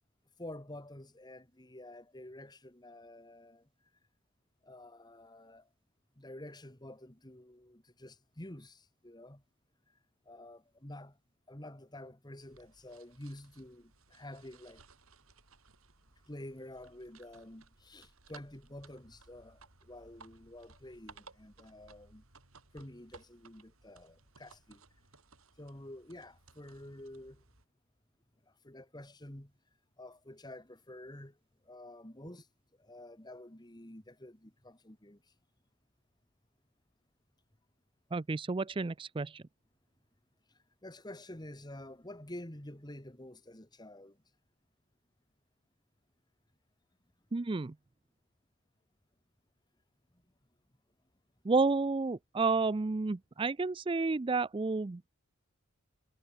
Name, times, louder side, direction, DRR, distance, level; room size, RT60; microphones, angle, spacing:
voice 1, 0.4-3.7 4.6-5.7 6.2-9.4 10.3-11.2 11.5-14.8 16.3-22.2 22.7-24.8 25.6-27.4 28.5-29.5 30.0-31.4 31.6-32.5 32.8-35.2 40.5-44.2 50.1-50.2, left 1 dB, 20° left, 2.1 m, -49 dB
sound 1, 12.4-27.7, right 4 dB, 85° right, 4.7 m, -60 dB
voice 2, 38.1-39.4 47.3-47.7 51.4-55.1, right 3 dB, 25° right, 0.4 m, -31 dB
head